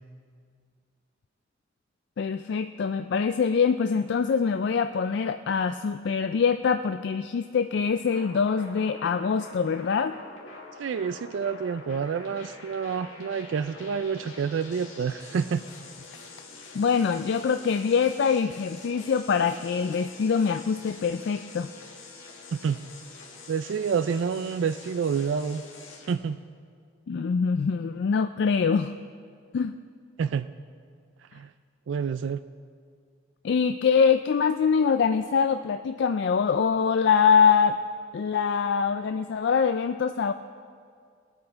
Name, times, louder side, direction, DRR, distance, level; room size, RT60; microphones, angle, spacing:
voice 1, 2.2-10.2 16.7-21.7 27.1-28.9 29.5-29.8 33.4-37.8 38.1-40.3, left 6 dB, 60° left, 8 dB, 0.3 m, -24 dB
sound 1, 8.1-26.1, left 3 dB, 85° left, 1.9 m, -46 dB
voice 2, 10.8-15.7 22.5-22.8 23.5-25.6 26.1-26.4 30.2-30.5 31.3-31.5 31.9-32.4, right 6 dB, 65° right, 12 dB, 0.3 m, -28 dB
20.0 x 8.7 x 4.5 m, 2.1 s
head